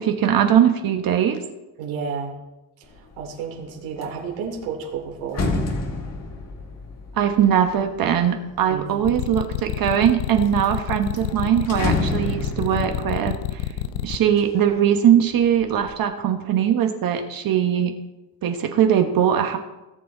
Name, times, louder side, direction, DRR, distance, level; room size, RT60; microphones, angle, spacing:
voice 1, 0.0-1.4 7.2-13.6 14.0-17.9 18.4-19.6, right 9 dB, 50° right, 4 dB, 1.3 m, -20 dB
voice 2, 1.8-2.4 2.8-5.5 8.7-9.1, right 6 dB, 85° right, 0 dB, 2.9 m, -31 dB
sound 1, 2.9-3.3 3.7-9.0 9.6-10.3 10.6-10.7 11.0-14.9 15.3-15.9, left 3 dB, 35° left, 1.7 m, -30 dB
sound 2, 9.0-14.2, left 13 dB, 80° left, 0.8 m, -28 dB
17.5 x 6.9 x 4.0 m, 1.0 s
cardioid pair, 120°, 44 cm